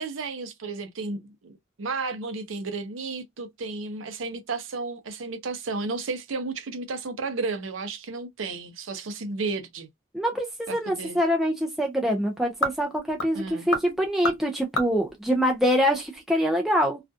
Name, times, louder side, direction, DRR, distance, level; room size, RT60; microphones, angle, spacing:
voice 1, 0.0-9.9 10.7-11.2 13.3-13.7, right 3 dB, 70° right, 0.6 m, -33 dB
voice 2, 10.1-17.0, equal, ahead, 0.4 m, -25 dB
sound 1, 10.5-16.3, left 1 dB, 85° left, 1.0 m, -34 dB
2.4 x 2.2 x 2.5 m
head